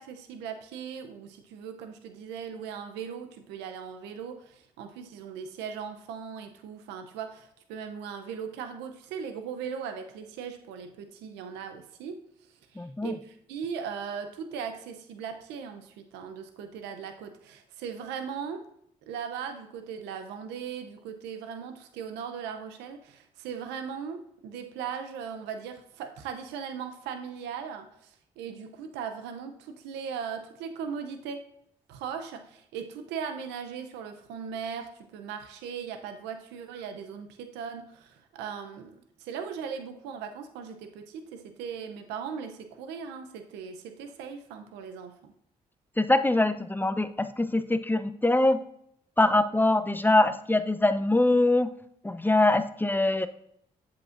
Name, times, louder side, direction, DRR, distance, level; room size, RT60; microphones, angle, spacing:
voice 1, 0.0-12.2 12.7-18.6 19.0-31.4 31.9-38.9 39.2-45.3, right 7 dB, 85° right, 6 dB, 0.6 m, -38 dB
voice 2, 12.8-13.1 46.0-48.6 49.2-51.7 52.0-53.3, left 2 dB, 10° left, 12 dB, 0.6 m, -23 dB
8.5 x 7.4 x 2.5 m, 0.71 s
supercardioid pair, 50°, 17 cm